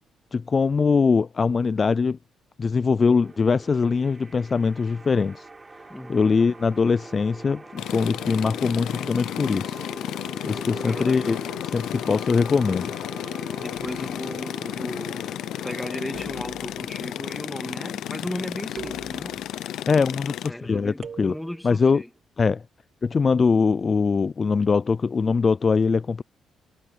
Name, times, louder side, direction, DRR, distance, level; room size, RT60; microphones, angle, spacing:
voice 1, 0.3-2.2 2.6-5.5 6.1-9.8 10.4-11.4 11.7-12.9 19.9-21.3 21.6-22.0 22.4-22.6 23.0-26.2, left 5 dB, 35° left, 0.3 m, -22 dB
sound 1, 3.2-22.2, right 3 dB, 25° right, 6.0 m, -44 dB
voice 2, 5.9-6.4 10.6-11.4 13.6-15.3 15.6-19.4 20.5-22.1, left 1 dB, 5° left, 2.1 m, -36 dB
sound 2, 7.8-20.5, left 12 dB, 80° left, 0.7 m, -33 dB
sound 3, 13.7-14.3 16.1-17.1 18.8-19.7 21.0-21.7, right 7 dB, 50° right, 3.9 m, -43 dB
cardioid pair, 90°, 0 cm